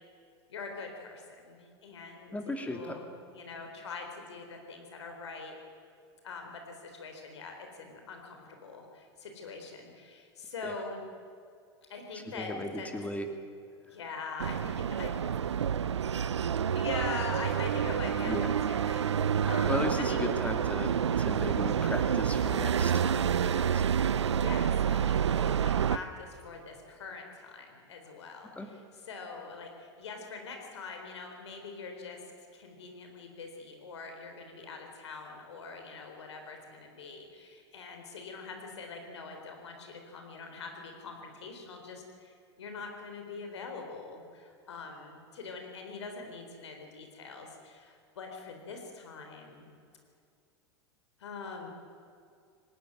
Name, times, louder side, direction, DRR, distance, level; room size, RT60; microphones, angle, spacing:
voice 1, 0.5-5.5 6.2-11.0 11.9-12.9 13.9-15.6 16.7-20.3 24.2-32.2 32.5-49.7 51.2-51.7, left 4 dB, 80° left, 4 dB, 4.0 m, -43 dB
voice 2, 2.3-3.0 10.6-10.7 12.3-13.3 18.3-18.5 19.4-23.8 28.6-28.7, left 1 dB, 10° left, 5 dB, 2.7 m, -36 dB
sound 1, 14.4-26.0, right 8 dB, 90° right, 0.6 m, -28 dB
18.5 x 18.5 x 9.3 m, 2.3 s
hypercardioid pair, 95°, 14 cm